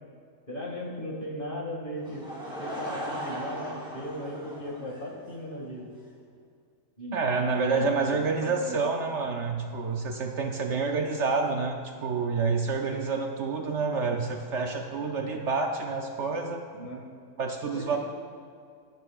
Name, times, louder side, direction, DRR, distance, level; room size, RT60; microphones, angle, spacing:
voice 1, 0.5-2.2 2.6-5.9 7.0-7.2 7.5-7.8 8.1-8.8 16.8-17.0 17.7-18.0, equal, 35° left, -2 dB, 2.1 m, -37 dB
Laughter / Crowd, 2.0-5.5, right 1 dB, 5° right, 2.5 m, -38 dB
voice 2, 7.1-16.6 17.4-18.0, right 4 dB, 60° right, 3 dB, 0.9 m, -28 dB
23.5 x 9.5 x 2.4 m, 2.2 s
omnidirectional pair, 1.5 m